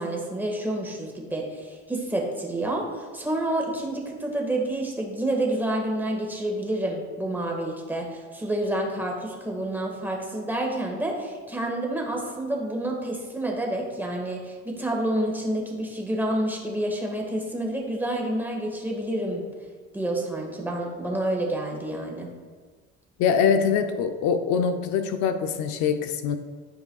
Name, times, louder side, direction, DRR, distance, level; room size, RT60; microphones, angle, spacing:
voice 1, 0.0-19.4 19.9-22.3, right 1 dB, 5° right, -1 dB, 1.6 m, -29 dB
voice 2, 23.2-26.4, left 6 dB, 70° left, 8 dB, 0.6 m, -23 dB
12.0 x 4.8 x 2.3 m, 1.5 s
supercardioid pair, 105°, 30 cm